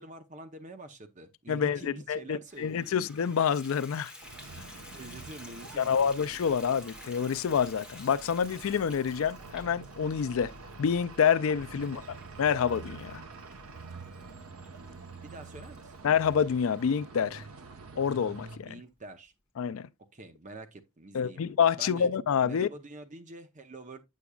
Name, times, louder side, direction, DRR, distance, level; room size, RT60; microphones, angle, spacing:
voice 1, 0.0-3.0 4.9-6.1 6.5-6.6 11.7-12.1 15.2-15.9 18.6-19.3 20.1-21.4 21.8-22.1 22.4-24.0, right 2 dB, 35° right, 0.7 m, -46 dB
voice 2, 1.5-4.1 4.6-4.7 5.8-10.5 10.8-12.0 12.4-13.2 16.0-17.4 18.0-18.7 19.6-19.9 21.1-22.7, left 7 dB, 65° left, 0.4 m, -27 dB
Water tap faucet / Bathtub (filling or washing), 2.5-16.8 17.4-17.5 18.0-18.1 18.4-18.5, left 1 dB, 5° right, 1.1 m, -52 dB
sound 1, 4.2-18.6, right 3 dB, 70° right, 0.8 m, -47 dB
8.3 x 6.0 x 2.3 m
head